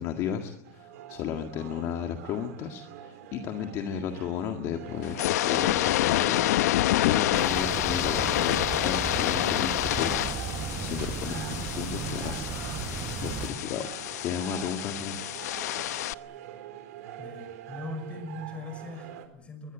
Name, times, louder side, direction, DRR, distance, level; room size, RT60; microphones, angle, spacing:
voice 1, 0.0-10.5 10.8-12.5 13.2-13.9 14.2-15.2, left 8 dB, 35° left, 4 dB, 1.9 m, -34 dB
sound 1, 0.6-19.3, right 11 dB, 75° right, 4.3 m, -45 dB
sound 2, 5.0-16.1, left 14 dB, 90° left, 0.9 m, -28 dB
sound 3, 7.3-13.5, right 6 dB, 25° right, 5.7 m, -35 dB
voice 2, 17.2-19.7, left 2 dB, 15° left, 8 dB, 5.8 m, -40 dB
22.0 x 22.0 x 9.2 m, 0.78 s
supercardioid pair, 165°, 8 cm